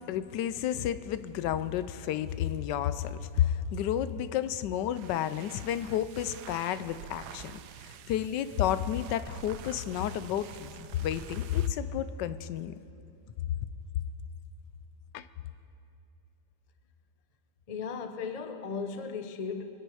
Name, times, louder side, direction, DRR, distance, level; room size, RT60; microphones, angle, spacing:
voice 1, 0.0-7.6 7.9-12.7 15.1-15.3, left 10 dB, 80° left, 13 dB, 1.2 m, -31 dB
sound 1, 4.8-11.8, right 10 dB, 70° right, 1.1 m, -48 dB
voice 2, 17.7-19.6, left 5 dB, 60° left, 7 dB, 0.3 m, -36 dB
24.5 x 9.9 x 4.8 m, 2.6 s
omnidirectional pair, 1.9 m